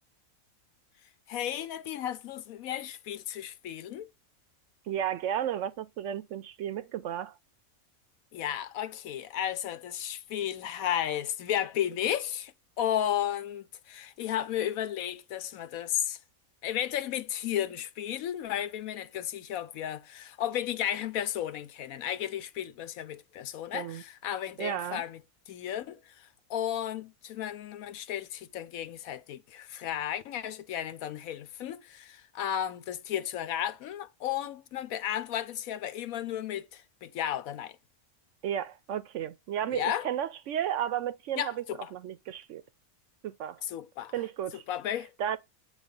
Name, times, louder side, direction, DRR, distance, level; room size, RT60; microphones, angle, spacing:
voice 1, 1.3-4.1 8.3-12.5 12.8-16.2 16.6-25.2 25.5-37.8 39.7-40.1 41.4-41.9 43.6-44.1 44.7-45.1, left 10 dB, 85° left, 1.1 m, -34 dB
voice 2, 4.9-7.3 23.7-24.0 24.6-25.0 38.4-41.6 41.9-42.6 43.2-43.6 44.1-44.6 45.2-45.4, right 10 dB, 65° right, 0.8 m, -33 dB
8.1 x 3.5 x 5.2 m
omnidirectional pair, 1.5 m